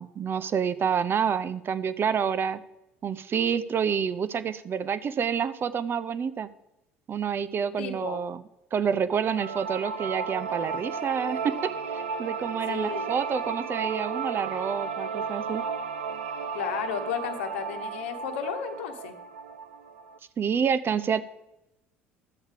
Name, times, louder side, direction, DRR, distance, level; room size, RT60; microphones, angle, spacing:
voice 1, 0.0-2.6 3.0-6.5 7.1-8.4 8.7-15.6 20.4-21.2, right 7 dB, 35° right, 15 dB, 0.7 m, -28 dB
voice 2, 7.8-8.2 12.7-13.1 16.5-19.1, left 7 dB, 65° left, 7 dB, 1.1 m, -33 dB
sound 1, 9.1-20.2, right 5 dB, 70° right, 0.6 m, -34 dB
12.5 x 8.0 x 4.7 m, 0.94 s
figure-of-eight pair, 60°, 7 cm